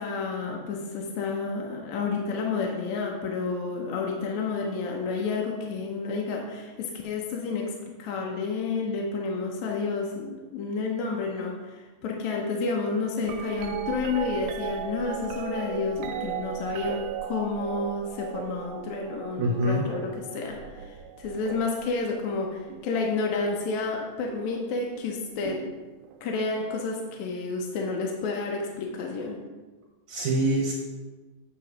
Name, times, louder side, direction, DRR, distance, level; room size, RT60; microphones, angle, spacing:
voice 1, 0.0-25.6 26.2-29.4, left 4 dB, 75° left, 0 dB, 1.7 m, -30 dB
sound 1, 13.2-23.3 24.3-24.7 25.4-26.4 28.2-28.3, right 8 dB, 85° right, 2.4 m, -37 dB
voice 2, 19.4-19.9 30.1-30.7, right 1 dB, 70° right, -1 dB, 2.0 m, -24 dB
9.2 x 3.8 x 5.9 m, 1.3 s
omnidirectional pair, 4.1 m